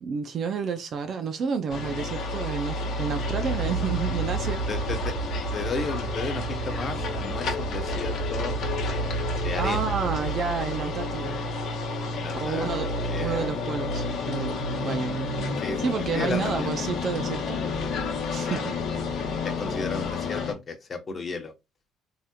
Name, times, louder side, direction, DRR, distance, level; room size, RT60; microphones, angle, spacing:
voice 1, 0.0-4.6 9.6-11.4 12.3-15.3 15.8-17.6 18.0-18.6, right 6 dB, 55° right, 0.5 m, -30 dB
sound 1, 1.7-20.5, left 2 dB, 60° left, 1.1 m, -30 dB
sound 2, 3.2-10.3, right 6 dB, 80° right, 1.2 m, -36 dB
voice 2, 4.7-5.2 5.5-9.9 12.2-13.8 15.6-15.8 16.1-16.7 18.5-18.7 19.4-21.5, left 4 dB, 40° left, 0.9 m, -34 dB
3.3 x 2.7 x 2.2 m
hypercardioid pair, 65°, 0 cm